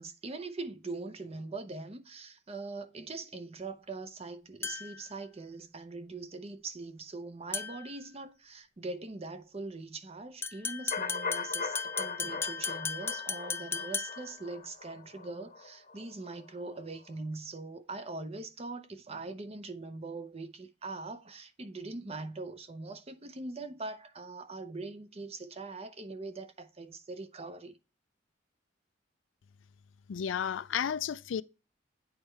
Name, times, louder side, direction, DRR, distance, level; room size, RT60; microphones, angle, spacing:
voice 1, 0.0-27.8, right 3 dB, 35° right, 0.7 m, -42 dB
sound 1, 4.6-5.1 7.5-7.9 10.4-14.4, left 5 dB, 15° left, 0.3 m, -36 dB
sound 2, 10.9-16.8 17.1-17.2, left 5 dB, 40° left, 0.8 m, -40 dB
voice 2, 30.1-31.4, left 8 dB, 85° left, 0.4 m, -32 dB
8.9 x 4.3 x 3.3 m
head